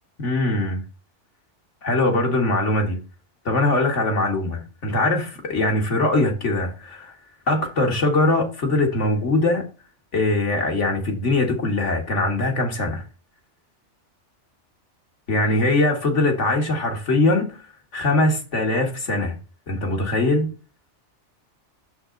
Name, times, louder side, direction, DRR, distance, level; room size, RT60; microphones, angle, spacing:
voice 1, 0.2-0.8 1.8-3.0 3.5-7.1 7.5-9.6 10.1-13.0 15.3-17.6 17.9-19.3 19.7-20.5, left 2 dB, 75° left, 2.0 m, -21 dB
6.7 x 6.0 x 3.9 m
omnidirectional pair, 1.2 m